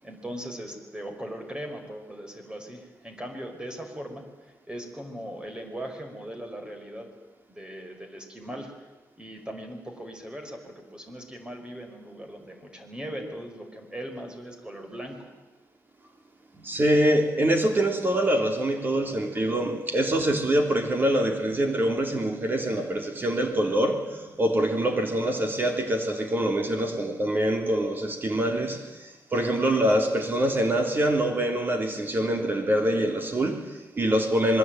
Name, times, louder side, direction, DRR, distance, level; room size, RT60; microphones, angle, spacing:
voice 1, 0.0-4.3 4.7-7.1 7.5-8.7 9.2-15.3, right 1 dB, 15° right, 4 dB, 5.2 m, -39 dB
voice 2, 16.6-34.6, right 1 dB, 30° right, 5 dB, 3.5 m, -25 dB
27.0 x 21.5 x 9.1 m, 1.1 s
wide cardioid pair, 125°, 6 cm